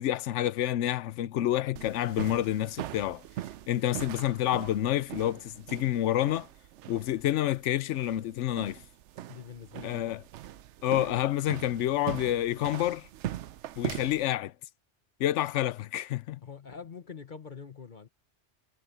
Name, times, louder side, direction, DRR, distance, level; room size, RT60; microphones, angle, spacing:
voice 1, 0.0-3.2 3.7-6.5 6.9-8.8 9.8-10.2 10.8-13.1 13.8-14.5 15.2-16.4, left 13 dB, 85° left, 0.9 m, -28 dB
sound 1, 1.8-14.2, right 12 dB, 80° right, 0.9 m, -41 dB
voice 2, 9.3-10.2 16.4-18.1, left 6 dB, 45° left, 1.3 m, -44 dB
omnidirectional pair, 1.2 m